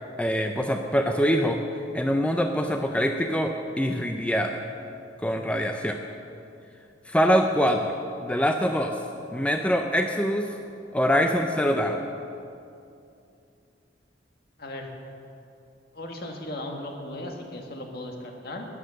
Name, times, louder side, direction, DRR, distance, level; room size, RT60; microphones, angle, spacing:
voice 1, 0.2-1.6 1.9-4.5 5.2-6.0 7.1-9.0 9.3-10.5 10.9-12.0, equal, 5° left, 4 dB, 0.5 m, -24 dB
voice 2, 14.6-14.9 15.9-18.7, left 1 dB, 55° left, 2 dB, 1.6 m, -36 dB
13.0 x 9.9 x 6.5 m, 2.6 s
head